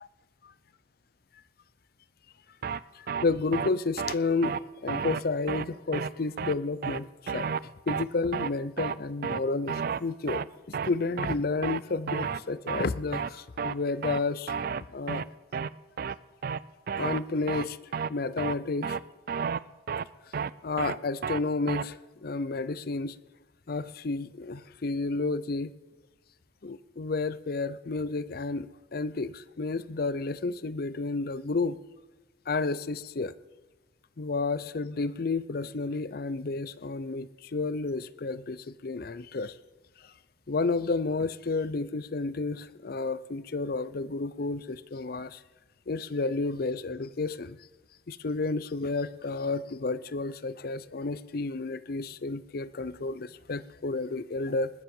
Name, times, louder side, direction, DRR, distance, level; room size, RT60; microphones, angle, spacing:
sound 1, 2.6-2.8 3.1-3.2 3.5-3.7 4.0-4.1 4.4-4.6 4.9-5.2 5.5-5.6 5.9-6.1 6.4-6.5 6.8-7.0 7.3-7.6 7.9-8.0 8.3-8.5 8.8-9.0 9.2-9.4 9.7-10.0 10.3-10.5 10.7-10.9 11.2-11.4 11.6-11.8 12.1-12.4 12.7-12.9 13.1-13.3 13.6-13.7 14.0-14.2 14.5-14.8 15.1-15.2 15.5-15.7 16.0-16.1 16.4-16.6 16.9-17.2 17.5-17.7 17.9-18.1 18.4-18.5 18.8-19.0 19.3-19.6 19.9-20.0 20.3-20.5 20.8-21.0 21.2-21.4 21.7-21.8, right 6 dB, 50° right, 0.3 m, -31 dB
voice 1, 3.0-4.6 4.8-7.5 7.9-14.5 14.9-15.2 17.0-17.8 18.1-19.0 20.6-23.2 23.7-25.7 26.6-31.8 32.5-33.3 34.2-39.6 40.0-40.1 40.5-45.4 45.9-47.6 48.1-54.7, left 3 dB, 55° left, 17 dB, 0.6 m, -31 dB
20.0 x 7.3 x 7.1 m, 1.2 s
head